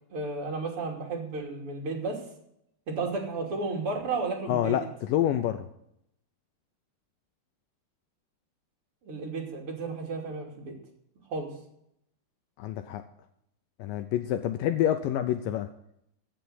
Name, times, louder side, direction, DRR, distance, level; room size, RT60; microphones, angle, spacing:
voice 1, 0.1-2.2 2.9-4.8 9.0-10.7 11.3-11.5, right 3 dB, 35° right, 0 dB, 3.2 m, -33 dB
voice 2, 4.5-5.7 12.6-13.0 13.8-15.7, left 11 dB, 85° left, 9 dB, 1.9 m, -27 dB
15.0 x 6.6 x 7.8 m, 0.75 s
omnidirectional pair, 4.7 m